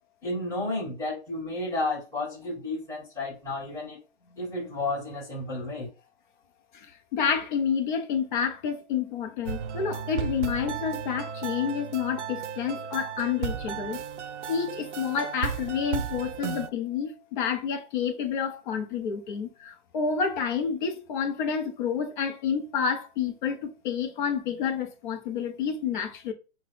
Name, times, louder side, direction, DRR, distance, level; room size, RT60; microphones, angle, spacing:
voice 1, 0.2-4.0 4.4-5.9, left 2 dB, 10° left, 1.9 m, -32 dB
voice 2, 6.7-14.0 14.5-26.3, left 7 dB, 45° left, 1.0 m, -29 dB
sound 1, 9.4-16.7, right 7 dB, 80° right, 0.6 m, -34 dB
5.8 x 2.4 x 3.3 m
hypercardioid pair, 130°, 34 cm